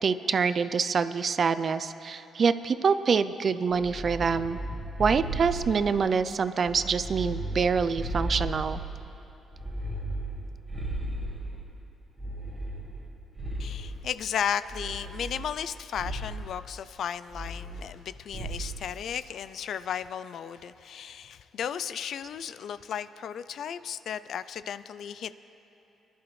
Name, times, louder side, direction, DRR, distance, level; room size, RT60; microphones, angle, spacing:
voice 1, 0.0-4.6 5.0-8.8, right 5 dB, 45° right, 13 dB, 0.4 m, -26 dB
sound 1, 3.7-6.1 6.6-9.1 9.5-11.7 12.2-14.1 14.7-15.7 15.9-16.4 17.3-18.0 18.3-18.8, right 1 dB, 20° right, 1.8 m, -35 dB
voice 2, 13.6-25.4, left 8 dB, 65° left, 15 dB, 0.4 m, -35 dB
23.5 x 11.5 x 3.2 m, 3.0 s
cardioid pair, 90°, 0 cm